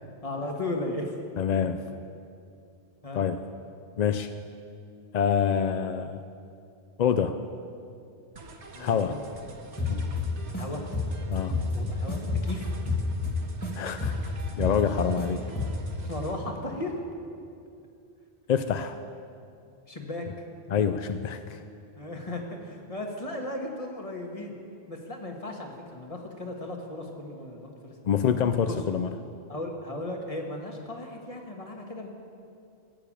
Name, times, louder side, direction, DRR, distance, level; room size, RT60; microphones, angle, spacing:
voice 1, 0.2-1.1 3.0-3.2 8.7-9.2 10.6-10.8 11.7-12.7 16.0-17.1 19.9-20.3 22.0-24.6 24.9-27.9 28.7-28.8 29.5-32.1, left 1 dB, 30° left, 1 dB, 1.6 m, -36 dB
voice 2, 1.4-1.8 3.1-3.4 4.0-4.3 5.1-6.2 7.0-7.4 8.8-9.1 9.9-10.0 11.3-11.6 13.7-14.3 14.6-15.4 18.5-19.0 20.7-21.6 28.0-29.1, left 7 dB, 60° left, 9 dB, 0.4 m, -26 dB
sound 1, 8.3-16.4, right 3 dB, 90° right, 1.5 m, -47 dB
sound 2, 9.8-10.6 10.9-13.7 14.0-15.2 15.6-15.9, left 3 dB, 15° left, 2.1 m, -29 dB
15.5 x 6.9 x 8.8 m, 2.5 s
omnidirectional pair, 1.1 m